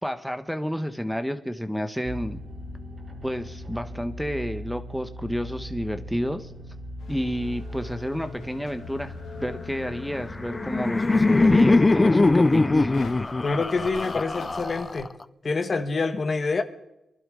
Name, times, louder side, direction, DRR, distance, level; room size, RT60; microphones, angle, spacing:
voice 1, 0.0-2.4 3.2-6.5 7.1-12.9, equal, ahead, 1.1 m, -30 dB
sound 1, 2.0-13.3, left 1 dB, 55° right, 3.1 m, -39 dB
sound 2, 7.0-15.0, left 4 dB, 85° left, 2.0 m, -45 dB
Laughter, 10.2-15.2, left 2 dB, 25° left, 0.5 m, -21 dB
voice 2, 13.4-15.1 15.4-16.6, left 4 dB, 50° left, 1.3 m, -26 dB
24.0 x 12.0 x 3.8 m
cardioid pair, 65°, 0 cm